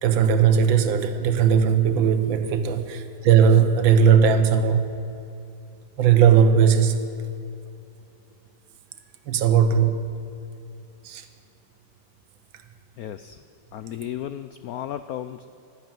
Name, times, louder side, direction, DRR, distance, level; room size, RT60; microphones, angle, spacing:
voice 1, 0.0-4.9 6.0-7.0 9.3-10.0 11.0-11.3, right 7 dB, 90° right, 1.8 m, -18 dB
voice 2, 13.0-13.4 13.7-15.5, left 11 dB, 75° left, 0.8 m, -34 dB
12.0 x 11.5 x 8.9 m
omnidirectional pair, 2.0 m